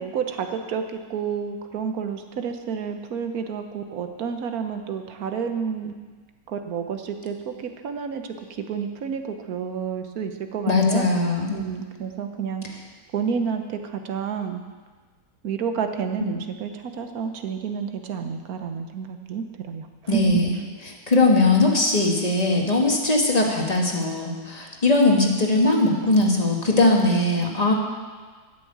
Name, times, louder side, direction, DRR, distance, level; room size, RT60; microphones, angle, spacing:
voice 1, 0.0-5.9 6.5-8.2 8.7-11.1 11.5-12.6 13.1-14.6 15.4-20.4, right 6 dB, 65° right, 6 dB, 1.4 m, -30 dB
voice 2, 10.7-11.5 20.1-20.6 21.1-27.7, left 2 dB, 25° left, 0 dB, 1.6 m, -20 dB
12.5 x 6.5 x 8.7 m, 1.4 s
omnidirectional pair, 1.7 m